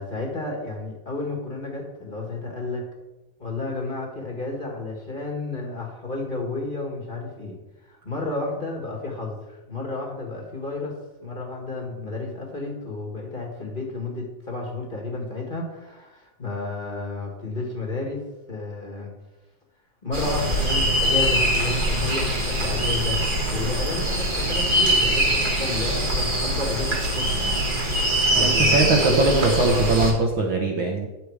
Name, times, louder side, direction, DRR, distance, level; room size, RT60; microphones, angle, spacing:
voice 1, 0.0-2.9 3.4-10.9 11.2-18.2 18.5-19.1 20.0-23.2 23.5-27.7 28.4-29.9, left 2 dB, 20° left, -1 dB, 1.5 m, -31 dB
sound 1, 20.1-30.1, right 1 dB, 30° right, 0.9 m, -23 dB
voice 2, 28.3-31.1, right 3 dB, 60° right, 1 dB, 1.3 m, -21 dB
10.5 x 6.9 x 4.8 m, 1.0 s
omnidirectional pair, 3.3 m